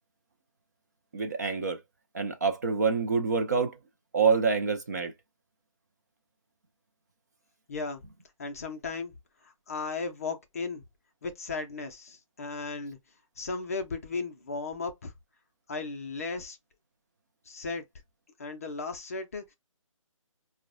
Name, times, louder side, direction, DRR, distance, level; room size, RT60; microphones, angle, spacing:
voice 1, 1.1-1.8 2.1-3.8 4.1-5.1, right 5 dB, 30° right, 0.4 m, -26 dB
voice 2, 7.7-8.0 8.4-9.1 9.4-10.8 11.2-13.0 13.4-15.1 15.7-16.6 17.5-17.9 18.4-19.5, left 4 dB, 25° left, 0.5 m, -35 dB
4.4 x 2.1 x 2.5 m
figure-of-eight pair, 150°, 18 cm